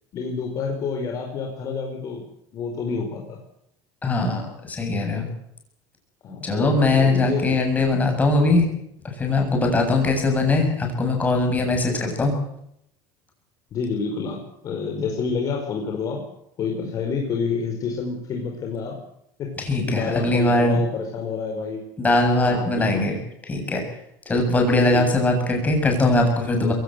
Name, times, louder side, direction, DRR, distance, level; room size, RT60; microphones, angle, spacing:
voice 1, 0.1-2.2 2.5-3.4 6.2-7.6 13.7-16.2 16.6-19.0 19.4-19.5 19.9-21.8 22.5-23.0 24.9-25.1, left 5 dB, 40° left, 2 dB, 4.6 m, -28 dB
voice 2, 4.0-5.3 6.4-8.7 9.2-12.3 19.6-20.8 22.0-23.2 23.4-23.8 24.3-26.7, left 2 dB, 15° left, 2 dB, 7.7 m, -21 dB
22.5 x 17.5 x 7.9 m, 0.76 s
cardioid pair, 145°, 9 cm